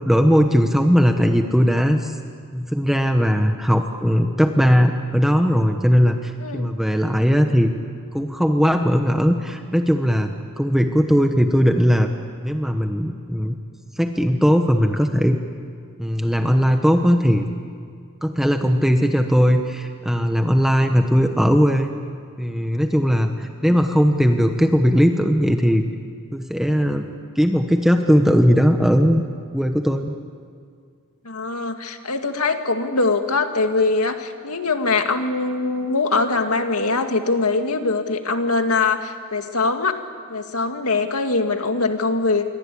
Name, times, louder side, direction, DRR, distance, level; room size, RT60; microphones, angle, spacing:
voice 1, 0.1-2.2 2.5-7.7 8.1-12.1 12.4-13.6 14.0-15.4 16.0-17.5 18.2-21.9 22.4-25.8 26.3-27.1 27.3-29.2 29.5-30.1, equal, ahead, 5 dB, 1.0 m, -18 dB
voice 2, 6.4-6.7 31.2-40.0 40.3-42.5, left 3 dB, 80° left, 6 dB, 2.0 m, -22 dB
27.5 x 22.5 x 8.5 m, 2.2 s
head